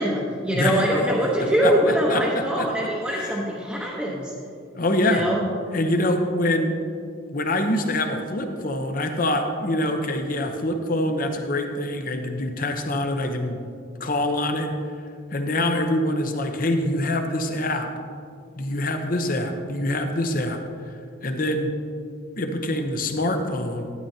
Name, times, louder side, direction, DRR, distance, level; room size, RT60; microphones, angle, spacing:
voice 1, 0.0-4.3 5.0-5.5, right 1 dB, 5° right, -6 dB, 0.9 m, -23 dB
voice 2, 0.5-1.0 1.6-2.7 3.1-3.4 4.7-5.3 5.7-6.8 7.3-13.6 14.0-14.7 15.3-17.9 18.6-20.6 20.9-21.7 22.4-23.8, left 1 dB, 40° left, 5 dB, 0.8 m, -25 dB
12.5 x 10.0 x 2.8 m, 2.4 s
head